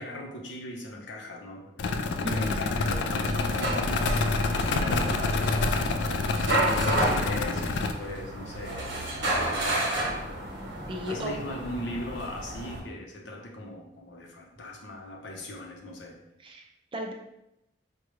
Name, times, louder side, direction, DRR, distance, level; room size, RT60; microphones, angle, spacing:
voice 1, 0.0-4.3 4.6-9.8 11.1-16.2, left 1 dB, 90° left, 0 dB, 0.7 m, -39 dB
sound 1, 1.8-7.9, left 3 dB, 70° left, 0.3 m, -27 dB
sound 2, 3.0-12.8, right 1 dB, 85° right, 1.0 m, -31 dB
voice 2, 10.9-11.3 16.4-17.1, equal, 30° right, 2 dB, 0.4 m, -35 dB
5.0 x 2.3 x 3.1 m, 0.87 s
head